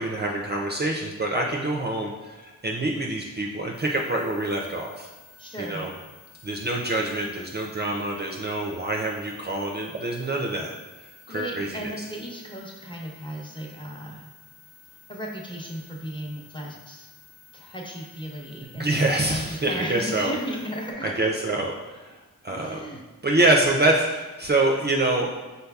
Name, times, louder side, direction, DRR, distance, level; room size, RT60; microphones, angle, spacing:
voice 1, 0.0-5.1 5.6-5.9 6.4-10.7 11.3-11.8 18.7-20.4 21.0-22.2 22.4-25.3, right 2 dB, 30° right, -1 dB, 0.4 m, -26 dB
sound 1, 3.7-20.9, left 3 dB, 80° left, 1.2 m, -53 dB
voice 2, 5.4-5.9 11.3-14.3 15.1-17.1 17.5-21.3 22.5-23.0, equal, 15° left, -2 dB, 0.8 m, -35 dB
5.3 x 4.0 x 2.3 m, 1.2 s
wide cardioid pair, 75°, 34 cm